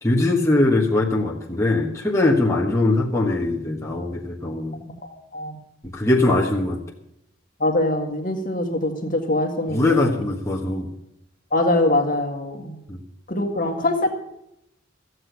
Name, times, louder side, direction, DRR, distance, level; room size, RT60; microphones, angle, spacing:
voice 1, 0.0-4.8 5.9-6.8 9.7-10.9 12.9-13.0, left 2 dB, 15° left, -3 dB, 1.4 m, -21 dB
voice 2, 4.8-5.5 7.6-10.2 11.5-12.7 13.3-14.1, left 1 dB, 40° left, 4 dB, 1.8 m, -23 dB
14.5 x 7.9 x 8.3 m, 0.82 s
head